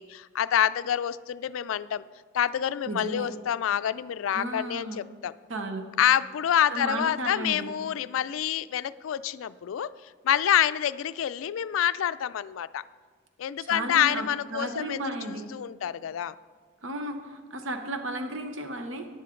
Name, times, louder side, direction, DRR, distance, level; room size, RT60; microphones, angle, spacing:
voice 1, 0.0-2.0 2.3-5.3 6.0-9.9 10.2-12.8 13.4-16.3, left 10 dB, 90° left, 15 dB, 0.3 m, -27 dB
voice 2, 2.9-3.3 4.3-5.0 5.5-5.9 6.7-7.7 13.6-15.5 16.8-19.1, right 2 dB, 80° right, 6 dB, 0.9 m, -34 dB
13.5 x 10.5 x 3.8 m, 1.5 s
head